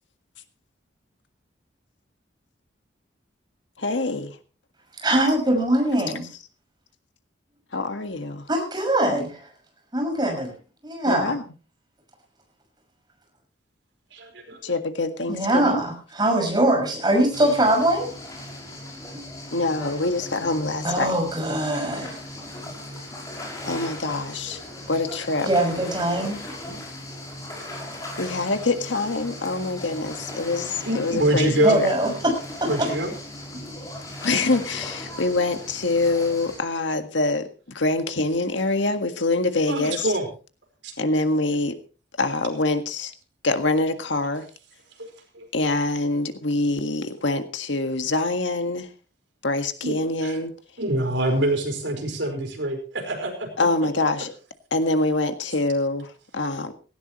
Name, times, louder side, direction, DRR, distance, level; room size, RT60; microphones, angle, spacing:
voice 1, 3.8-4.4 7.7-8.4 11.1-11.4 14.6-15.8 19.5-21.2 22.6-22.8 23.7-24.6 24.9-25.5 28.2-31.9 34.2-40.1 41.0-41.7 42.2-43.1 43.4-44.4 45.5-48.9 49.4-50.5 53.6-54.3 54.7-56.7, left 2 dB, 80° left, 7 dB, 1.8 m, -25 dB
voice 2, 5.0-6.3 8.5-9.4 9.9-10.5 10.8-11.4 15.3-18.1 19.1-19.2 20.8-22.1 25.5-26.4 31.6-32.9, right 1 dB, 25° right, 2 dB, 6.3 m, -22 dB
voice 3, 14.1-14.6 30.8-31.8 32.6-33.1 39.7-40.3 40.8-40.9 45.0-45.1 45.3-45.5 49.8-49.9 50.2-50.4 50.8-53.5, right 1 dB, 75° right, 4 dB, 5.0 m, -25 dB
sound 1, 17.3-36.6, left 1 dB, 20° left, 5.6 m, -38 dB
18.0 x 17.0 x 3.1 m, 0.36 s
head